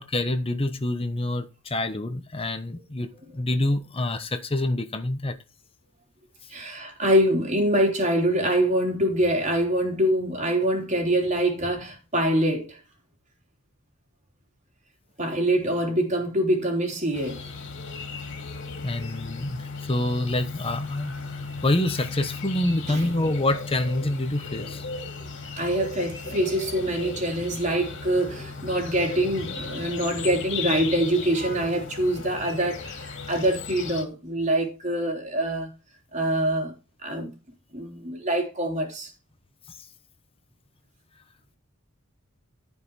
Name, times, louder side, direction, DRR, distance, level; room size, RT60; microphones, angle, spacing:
voice 1, 0.0-3.1 3.3-5.4 18.8-21.1 21.6-24.9 39.7-39.8, left 1 dB, 25° left, 1.0 m, -27 dB
voice 2, 6.5-12.8 15.2-17.4 22.9-23.1 24.6-24.7 25.6-35.7 36.1-36.7 37.0-37.3 37.7-39.1, right 1 dB, 35° right, 3.5 m, -25 dB
sound 1, 17.1-34.0, left 4 dB, 60° left, 2.8 m, -36 dB
14.5 x 5.5 x 4.8 m
head